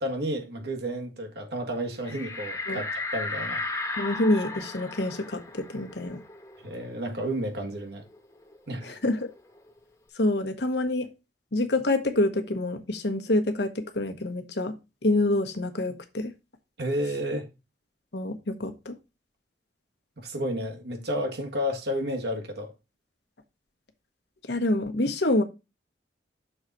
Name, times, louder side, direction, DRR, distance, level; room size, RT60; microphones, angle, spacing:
voice 1, 0.0-3.6 6.6-8.0 8.7-8.9 16.8-17.5 20.2-22.7, equal, 60° right, 1.6 m, -31 dB
sound 1, 2.0-7.2 7.6-7.7 8.0-9.7, left 3 dB, 20° left, 1.1 m, -35 dB
voice 2, 4.0-6.2 8.8-9.3 10.1-11.1 11.5-14.7 15.0-16.3 18.1-18.9 24.5-25.4, left 2 dB, 65° left, 1.1 m, -26 dB
6.4 x 4.0 x 6.0 m
head